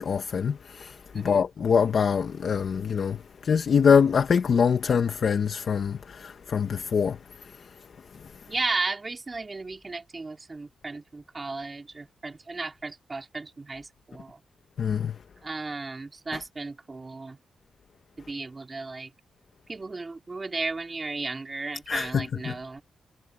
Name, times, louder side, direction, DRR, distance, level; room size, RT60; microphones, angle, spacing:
voice 1, 0.0-3.2 3.4-7.2 14.8-15.1 21.9-22.5, left 6 dB, 50° left, 1.6 m, -24 dB
voice 2, 8.5-14.4 15.4-17.4 18.2-19.1 19.7-22.8, right 3 dB, 25° right, 3.5 m, -34 dB
wide cardioid pair, 145°, 0 cm